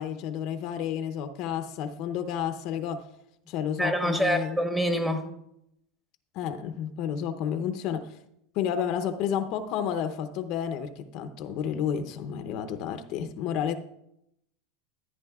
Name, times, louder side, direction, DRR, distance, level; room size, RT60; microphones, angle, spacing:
voice 1, 0.0-3.1 3.5-4.6 6.3-8.1 8.5-13.8, left 8 dB, 55° left, 9 dB, 0.7 m, -31 dB
voice 2, 3.8-5.3, equal, 10° right, 5 dB, 1.2 m, -26 dB
13.5 x 9.1 x 2.4 m, 0.80 s
supercardioid pair, 120°, 0 cm